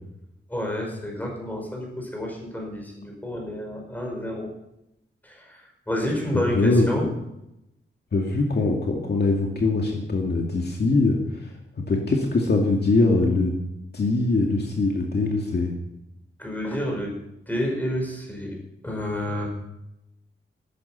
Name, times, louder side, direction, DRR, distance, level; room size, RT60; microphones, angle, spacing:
voice 1, 0.5-4.5 5.2-5.4 5.9-7.1 16.4-17.1 17.5-18.6 18.8-19.5, equal, 10° left, 0 dB, 5.2 m, -29 dB
voice 2, 6.3-7.1 8.1-11.5 11.8-13.6 13.9-15.7, left 3 dB, 50° left, 0 dB, 2.2 m, -22 dB
15.0 x 13.0 x 5.7 m, 0.86 s
wide cardioid pair, 170°, 21 cm